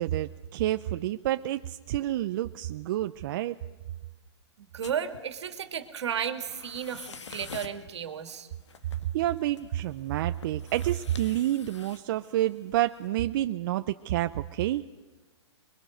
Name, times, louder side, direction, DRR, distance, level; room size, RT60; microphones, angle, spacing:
voice 1, 0.0-3.6 9.1-14.8, right 13 dB, 50° right, 9 dB, 0.6 m, -29 dB
voice 2, 4.6-8.5, right 8 dB, 75° right, 9 dB, 2.2 m, -34 dB
sound 1, 4.8-13.1, left 5 dB, 90° left, 2.1 m, -49 dB
25.0 x 22.5 x 6.5 m, 1.3 s
hypercardioid pair, 145°, 15 cm